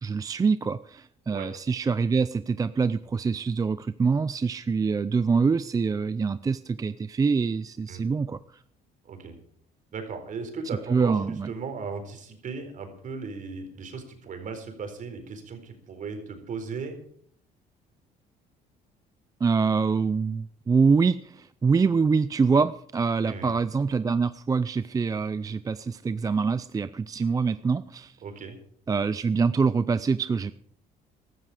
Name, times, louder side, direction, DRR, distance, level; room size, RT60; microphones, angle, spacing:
voice 1, 0.0-8.4 10.9-11.5 19.4-28.2 28.9-30.5, right 5 dB, 20° right, 14 dB, 0.5 m, -25 dB
voice 2, 9.9-11.2 11.5-17.0 23.2-23.6 28.2-28.6, right 5 dB, 50° right, 6 dB, 4.3 m, -37 dB
15.5 x 13.0 x 4.9 m, 0.63 s
cardioid pair, 110°, 17 cm